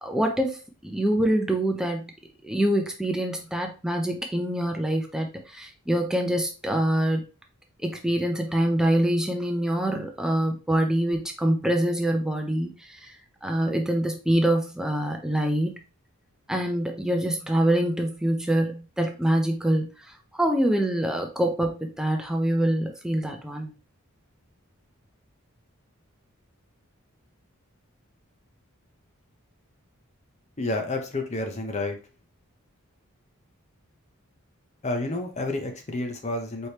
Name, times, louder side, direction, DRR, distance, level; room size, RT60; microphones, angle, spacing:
voice 1, 0.0-2.1 2.4-7.2 7.8-13.2 13.4-15.7 16.5-19.9 20.3-23.7, right 1 dB, 5° right, 3 dB, 0.6 m, -25 dB
voice 2, 30.6-32.0 34.8-36.7, left 2 dB, 30° left, 4 dB, 0.7 m, -30 dB
4.3 x 3.1 x 3.3 m, 0.32 s
head